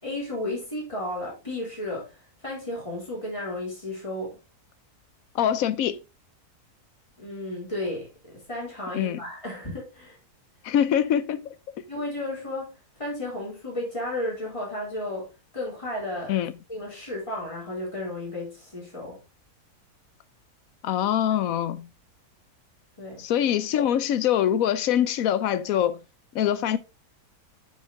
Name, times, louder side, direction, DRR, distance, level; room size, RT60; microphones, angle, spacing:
voice 1, 0.0-4.4 7.2-10.2 11.9-16.3 16.7-19.2 23.0-23.2, left 1 dB, 20° left, 4.2 m, -33 dB
voice 2, 5.3-6.0 8.9-9.2 10.6-11.6 16.3-16.5 20.8-21.9 23.2-26.0 26.3-26.8, left 10 dB, 65° left, 1.1 m, -24 dB
9.0 x 5.7 x 3.4 m
omnidirectional pair, 1.7 m